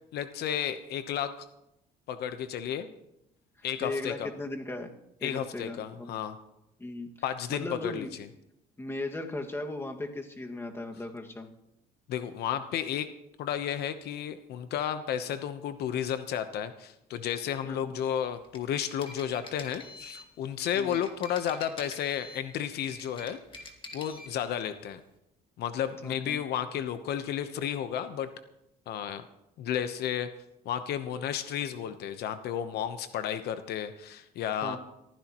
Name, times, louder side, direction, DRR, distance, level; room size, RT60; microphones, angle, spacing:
voice 1, 0.1-1.3 2.1-2.9 3.6-4.3 5.2-6.4 7.2-8.1 12.1-13.1 13.4-23.6 23.9-25.0 25.6-28.3 28.9-29.2 29.6-30.3 30.6-34.8, left 9 dB, 75° left, 10 dB, 1.0 m, -32 dB
voice 2, 3.8-4.9 5.2-6.1 6.8-7.1 7.5-8.1 8.8-11.5 17.6-17.9 20.7-21.0 26.0-26.4 34.6-34.8, left 2 dB, 15° left, 2 dB, 2.0 m, -37 dB
sound 1, 18.4-20.3 20.8-22.5 22.8-24.3, left 2 dB, 30° left, 2.1 m, -46 dB
23.5 x 15.0 x 3.1 m, 0.86 s
cardioid pair, 110°, 17 cm